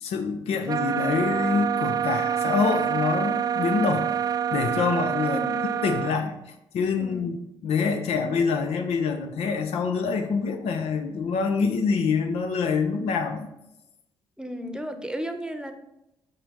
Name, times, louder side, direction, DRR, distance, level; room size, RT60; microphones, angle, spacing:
voice 1, 0.0-4.1 4.5-5.4 5.8-6.4 6.7-7.4 7.6-13.5, left 5 dB, 70° left, 7 dB, 0.8 m, -26 dB
sound 1, 0.7-6.2, right 8 dB, 35° right, 0.4 m, -26 dB
voice 2, 5.2-5.6 7.0-7.3 14.4-15.7, equal, 5° right, 7 dB, 0.9 m, -34 dB
5.7 x 5.6 x 3.6 m, 0.88 s
hypercardioid pair, 45°, 11 cm